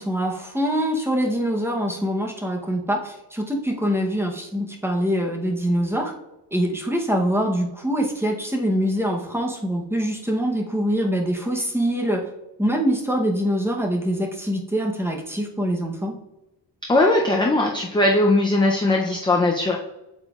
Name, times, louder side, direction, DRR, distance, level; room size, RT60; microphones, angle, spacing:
voice 1, 0.0-6.1 6.5-12.3 12.6-16.1, equal, 5° right, 1 dB, 0.8 m, -24 dB
voice 2, 16.9-19.8, left 2 dB, 10° left, 0 dB, 0.5 m, -19 dB
8.0 x 7.1 x 2.4 m, 0.95 s
wide cardioid pair, 160°, 41 cm